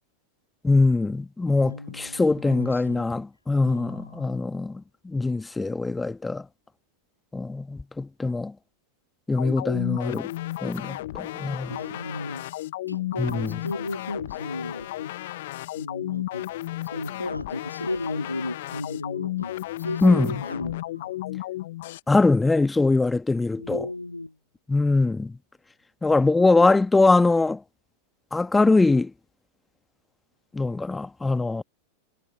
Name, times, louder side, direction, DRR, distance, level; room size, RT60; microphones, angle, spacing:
voice 1, 0.6-6.4 7.3-8.5 9.3-10.3 10.6-11.8 13.2-13.6 20.0-20.3 22.1-23.9 24.7-25.3 26.0-27.6 28.3-29.1 30.5-31.6, left 3 dB, 10° left, 1.6 m, -22 dB
voice 2, 1.6-3.1 3.6-4.5 11.7-12.5 12.9-15.1 15.8-16.5 16.8-21.2 23.6-24.4, left 2 dB, 85° left, 3.8 m, -35 dB
sound 1, 9.4-22.0, left 16 dB, 55° left, 1.2 m, -33 dB
figure-of-eight pair, 90°, 0 cm